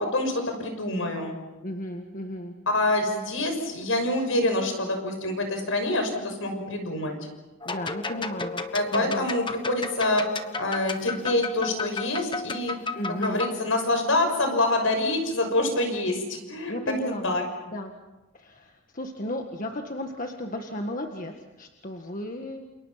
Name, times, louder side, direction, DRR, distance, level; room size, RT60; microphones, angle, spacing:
voice 1, 0.0-1.3 2.7-7.1 8.7-10.2 10.6-12.8 13.1-16.7 17.2-17.4, left 2 dB, 70° left, 5 dB, 6.3 m, -26 dB
voice 2, 1.6-2.5 7.7-8.6 8.9-9.3 12.9-13.5 16.7-17.3 17.7-17.9 18.3-21.3 21.6-22.6, left 1 dB, 40° left, 3 dB, 1.7 m, -34 dB
sound 1, 7.6-13.5, left 4 dB, 25° left, 1.3 m, -33 dB
29.0 x 28.5 x 5.8 m, 1.1 s
head